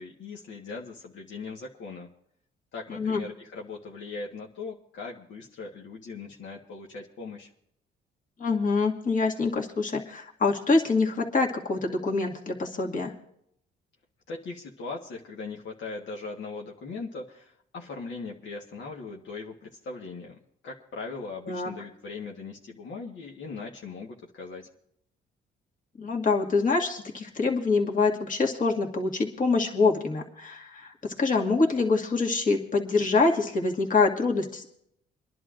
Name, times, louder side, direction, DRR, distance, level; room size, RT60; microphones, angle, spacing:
voice 1, 0.0-2.1 2.7-7.5 14.3-24.7, left 4 dB, 70° left, -1 dB, 1.4 m, -39 dB
voice 2, 8.4-13.1 21.5-21.7 26.0-34.7, left 3 dB, 40° left, 0 dB, 2.0 m, -25 dB
29.5 x 11.0 x 2.5 m, 0.72 s
cardioid pair, 90°, 20 cm